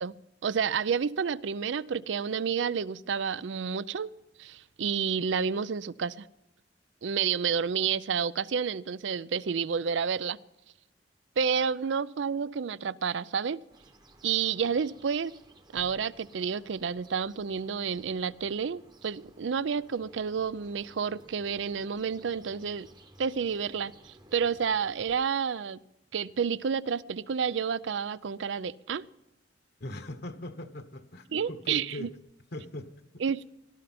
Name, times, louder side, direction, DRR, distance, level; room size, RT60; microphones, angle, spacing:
voice 1, 0.4-4.1 4.4-6.3 7.0-10.4 11.4-13.6 14.2-15.3 15.7-22.9 23.2-25.8 26.1-29.0 31.3-32.1 33.2-33.4, right 6 dB, 75° right, 0.5 m, -30 dB
sound 1, 13.7-25.2, right 1 dB, 25° right, 1.0 m, -56 dB
voice 2, 29.8-32.1 32.5-32.9, left 1 dB, 60° left, 1.1 m, -40 dB
18.0 x 12.5 x 4.3 m
head